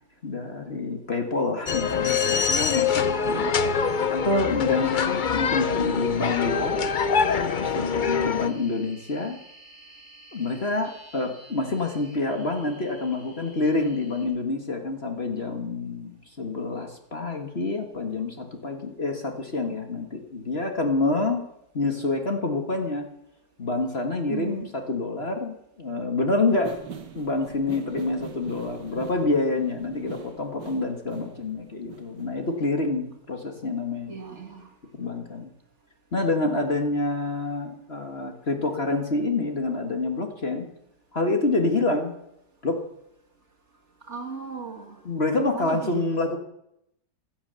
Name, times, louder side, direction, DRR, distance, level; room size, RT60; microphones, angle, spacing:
voice 1, 0.2-3.5 4.1-6.8 7.6-9.4 10.3-21.4 21.7-23.1 23.6-26.8 27.2-34.2 35.0-35.5 36.1-40.7 41.1-42.1 42.6-42.8 45.0-46.4, left 3 dB, 35° left, 4 dB, 2.0 m, -27 dB
sound 1, 1.7-8.5, left 6 dB, 55° left, 0.5 m, -24 dB
voice 2, 3.2-3.6 24.3-24.7 34.1-34.7 44.1-45.0 45.5-46.0, right 5 dB, 40° right, 2 dB, 2.4 m, -36 dB
sound 2, 3.8-14.3, equal, 70° left, 7.6 m, -51 dB
sound 3, 26.5-32.7, right 6 dB, 70° right, 2.0 m, -42 dB
15.5 x 13.0 x 7.0 m, 0.79 s
omnidirectional pair, 1.9 m